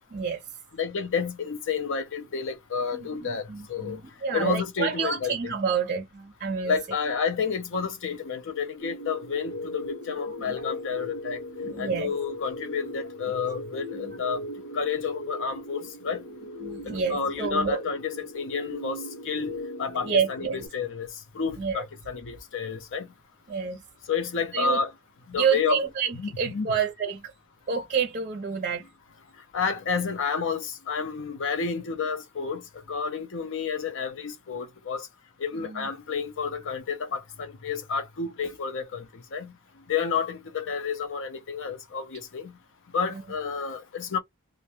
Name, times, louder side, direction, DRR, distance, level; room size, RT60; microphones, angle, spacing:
voice 1, 0.1-0.4 2.9-6.8 10.4-10.7 11.6-12.1 14.0-14.2 16.6-17.8 20.0-20.7 21.6-21.9 23.5-23.8 24.5-24.8 25.4-27.3 27.7-28.9 35.5-35.9 43.1-43.2, right 6 dB, 35° right, 0.5 m, -29 dB
voice 2, 0.8-4.0 4.3-5.3 6.6-11.4 11.8-14.4 14.7-16.2 17.1-19.0 19.2-19.5 19.8-21.1 21.3-23.1 24.1-24.9 25.3-25.8 26.2-26.7 29.5-32.6 32.9-35.1 35.4-39.0 39.3-39.5 39.9-42.5 42.9-44.2, left 5 dB, 60° left, 0.6 m, -30 dB
sound 1, 8.8-20.7, left 1 dB, 85° left, 1.3 m, -38 dB
2.5 x 2.1 x 2.9 m
head